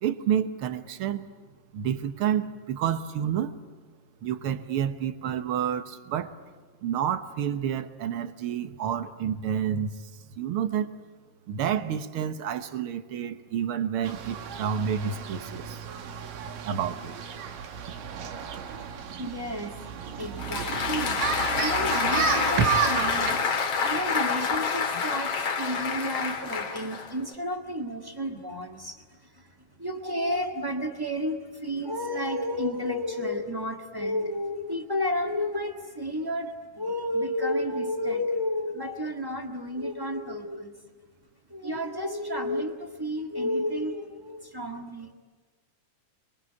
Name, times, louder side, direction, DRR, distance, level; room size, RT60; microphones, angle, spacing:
voice 1, 0.0-1.2 1.7-3.5 4.2-6.4 6.8-9.9 10.4-10.9 11.5-15.8 16.6-17.1 22.6-22.7, right 8 dB, 60° right, 1.5 m, -29 dB
sound 1, 14.0-23.4, right 7 dB, 90° right, 3.3 m, -33 dB
voice 2, 19.2-19.8 20.2-21.2 21.5-23.5 23.8-29.0 29.3-29.5 29.8-40.7 41.5-45.1, left 1 dB, 35° right, 0.3 m, -31 dB
Applause, 20.2-27.3, left 5 dB, 50° left, 2.7 m, -28 dB
29.5 x 23.0 x 8.7 m
omnidirectional pair, 3.8 m